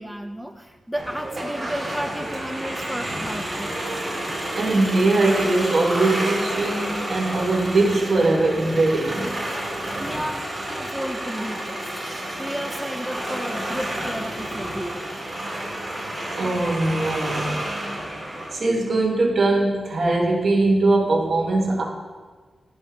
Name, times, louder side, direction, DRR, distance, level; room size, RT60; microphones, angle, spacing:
voice 1, 0.0-3.8 10.0-11.9 12.4-15.2, equal, ahead, 3 dB, 0.3 m, -33 dB
sound 1, 0.9-18.5, right 1 dB, 25° right, 2.0 m, -30 dB
voice 2, 4.5-9.4 16.4-17.7 18.5-21.8, right 2 dB, 60° right, -1 dB, 1.2 m, -21 dB
12.0 x 5.4 x 2.3 m, 1.5 s
wide cardioid pair, 125°, 0 cm